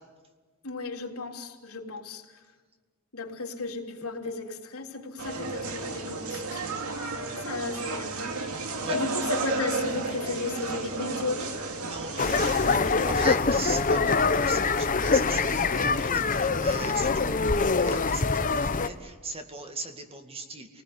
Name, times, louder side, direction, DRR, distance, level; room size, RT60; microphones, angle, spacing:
voice 1, 0.6-2.3 3.1-8.5 8.9-11.5, left 3 dB, 85° left, 1 dB, 3.5 m, -35 dB
sound 1, 5.2-12.8, right 3 dB, 80° right, 2.5 m, -32 dB
voice 2, 11.8-20.7, right 3 dB, 25° right, 5 dB, 2.2 m, -39 dB
sound 2, 12.2-18.9, left 4 dB, 35° left, 1.0 m, -24 dB
29.5 x 19.0 x 9.7 m, 1.4 s
head